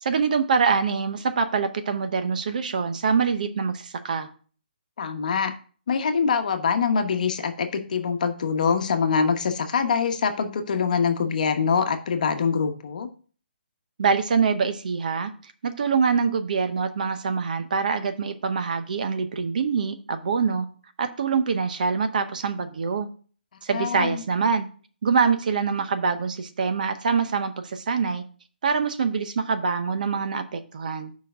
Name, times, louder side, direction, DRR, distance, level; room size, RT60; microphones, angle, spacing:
voice 1, 0.0-4.3 14.0-15.3 15.6-20.7 21.0-23.1 23.6-24.6 25.0-28.2 28.6-31.1, right 5 dB, 50° right, 10 dB, 0.8 m, -24 dB
voice 2, 5.0-5.5 5.9-13.1 23.7-24.2, left 6 dB, 45° left, 6 dB, 1.0 m, -24 dB
5.1 x 4.7 x 6.1 m, 0.42 s
hypercardioid pair, 165°, 6 cm